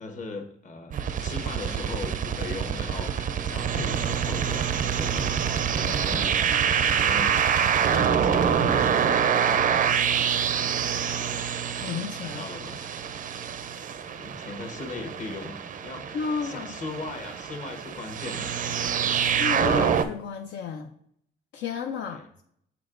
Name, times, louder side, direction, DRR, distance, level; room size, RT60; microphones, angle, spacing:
voice 1, 0.0-6.3 6.8-7.4 7.9-10.1 12.1-12.8 14.1-16.2 16.4-18.6 22.0-22.3, left 3 dB, 40° left, 5 dB, 1.1 m, -38 dB
sound 1, 0.9-20.0, right 8 dB, 45° right, 0.4 m, -26 dB
voice 2, 5.8-6.2 11.8-12.4 16.1-16.7 19.2-20.9 21.5-22.2, left 6 dB, 75° left, 4 dB, 0.5 m, -32 dB
6.8 x 6.1 x 2.5 m, 0.68 s
cardioid pair, 115°, 19 cm